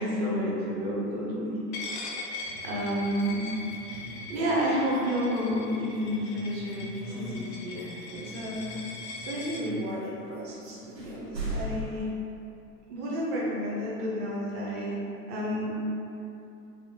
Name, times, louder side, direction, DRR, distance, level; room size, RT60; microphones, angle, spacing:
voice 1, 0.0-2.1 2.6-3.5 4.3-8.6 9.2-12.1 12.9-15.0 15.3-15.8, equal, 20° right, -5 dB, 0.5 m, -31 dB
Coin (dropping), 1.7-9.6, left 3 dB, 45° left, 0.5 m, -41 dB
sound 1, 2.3-11.3, equal, 55° right, 1.1 m, -47 dB
sound 2, 11.0-12.1, equal, 90° right, 0.9 m, -34 dB
3.4 x 2.4 x 2.7 m, 2.8 s
figure-of-eight pair, 100°, 49 cm